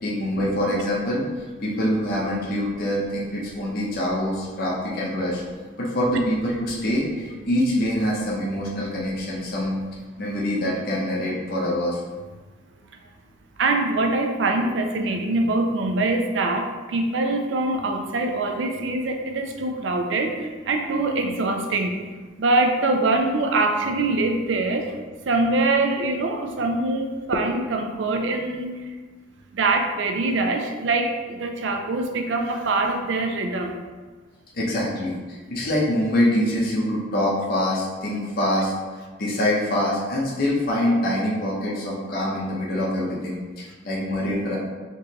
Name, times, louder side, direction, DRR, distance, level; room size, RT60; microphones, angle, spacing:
voice 1, 0.0-5.4 5.8-9.8 10.2-12.0 34.5-38.7 39.2-44.6, left 1 dB, 50° left, -5 dB, 0.7 m, -25 dB
voice 2, 13.6-22.0 22.4-24.9 25.3-28.9 29.5-33.8, right 2 dB, 65° right, 4 dB, 0.4 m, -23 dB
4.3 x 3.1 x 2.9 m, 1.4 s
head